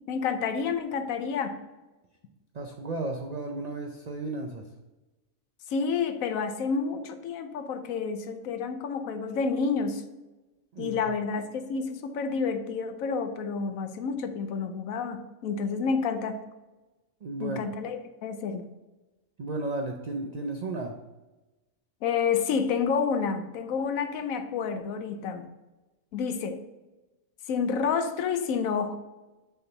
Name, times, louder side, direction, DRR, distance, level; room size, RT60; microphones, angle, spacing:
voice 1, 0.1-1.6 5.7-10.0 10.8-16.4 17.4-18.6 22.0-25.5 26.1-26.6 27.5-29.0, left 5 dB, 80° left, 9 dB, 1.1 m, -29 dB
voice 2, 2.5-4.7 10.7-11.1 17.2-17.6 19.4-21.0, right 2 dB, 65° right, 2 dB, 0.4 m, -34 dB
6.7 x 3.6 x 5.6 m, 1.1 s
omnidirectional pair, 1.4 m